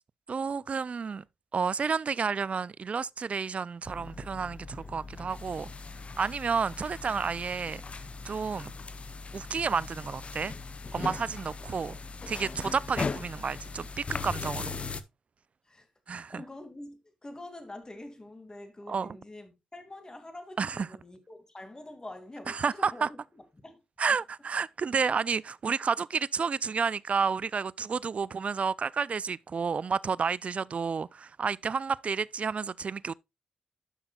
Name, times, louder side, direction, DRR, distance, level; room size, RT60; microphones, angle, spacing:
voice 1, 0.3-1.2 1.5-5.7 6.2-7.8 8.2-8.7 9.3-10.5 10.9-12.0 12.3-14.8 16.1-16.4 18.9-19.2 20.6-20.9 22.5-23.1 24.0-33.1, right 5 dB, 50° right, 0.3 m, -30 dB
sound 1, 3.9-15.0, left 4 dB, 45° left, 0.7 m, -39 dB
voice 2, 15.6-23.8 24.1-24.2 25.1-25.2, left 1 dB, 25° left, 2.3 m, -46 dB
12.0 x 6.0 x 2.3 m
supercardioid pair, 45°, 3 cm